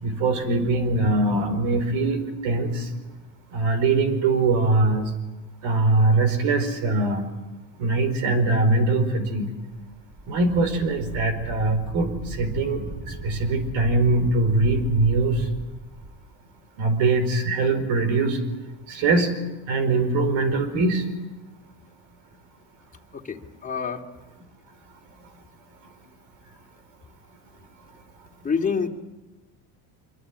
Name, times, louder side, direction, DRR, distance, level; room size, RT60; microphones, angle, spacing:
voice 1, 0.0-2.9 3.5-5.1 5.6-7.3 7.8-9.5 10.3-15.5 16.8-18.4 18.9-19.4 19.7-21.1 25.2-25.3, right 3 dB, 75° right, 11 dB, 4.9 m, -22 dB
Wind, 9.7-16.1, right 2 dB, 30° right, 6.1 m, -37 dB
voice 2, 23.1-24.0 28.4-28.9, left 6 dB, 15° left, 2 dB, 2.6 m, -27 dB
25.5 x 23.0 x 9.8 m, 1.1 s
cardioid pair, 120°, 48 cm